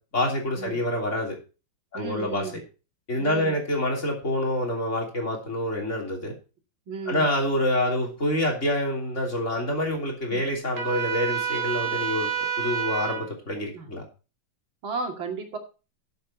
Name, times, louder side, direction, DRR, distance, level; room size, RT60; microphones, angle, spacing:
voice 1, 0.1-1.4 1.9-2.5 3.1-6.3 7.1-12.3 12.6-14.0, left 1 dB, 35° left, 1 dB, 3.5 m, -27 dB
voice 2, 1.9-2.6 3.2-3.6 6.9-7.3 10.3-10.5 13.7-13.9 14.8-15.6, right 4 dB, 90° right, 3 dB, 3.1 m, -34 dB
Trumpet, 10.7-13.3, right 8 dB, 45° right, 2.7 m, -28 dB
12.5 x 7.9 x 4.2 m, 0.33 s
omnidirectional pair, 2.1 m